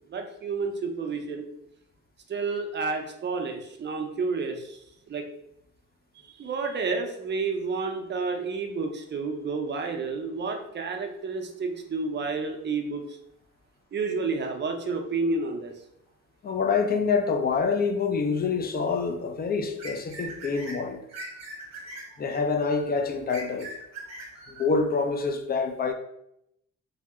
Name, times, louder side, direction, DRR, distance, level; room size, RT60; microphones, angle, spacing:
voice 1, 0.1-1.4 2.3-4.8 5.1-5.3 6.3-13.2 13.9-15.7, right 4 dB, 35° right, 0.5 m, -30 dB
voice 2, 16.4-21.0 22.2-23.7 24.5-25.9, left 5 dB, 30° left, 0.4 m, -26 dB
sound 1, 19.8-24.6, right 1 dB, 60° right, 0.9 m, -41 dB
2.7 x 2.0 x 3.5 m
cardioid pair, 90°, 30 cm